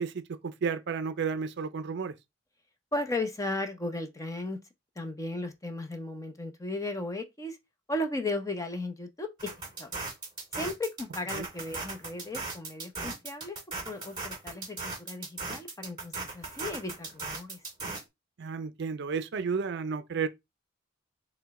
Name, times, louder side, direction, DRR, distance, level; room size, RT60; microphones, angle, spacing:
voice 1, 0.0-2.1 11.3-11.5 18.4-20.3, right 5 dB, 60° right, 0.5 m, -32 dB
voice 2, 2.9-4.6 5.0-7.6 7.9-9.5 9.8-9.9 10.5-13.6 13.8-17.6, left 2 dB, 15° left, 0.7 m, -35 dB
sound 1, 9.4-18.0, right 3 dB, 25° right, 2.1 m, -38 dB
4.5 x 2.2 x 4.0 m
head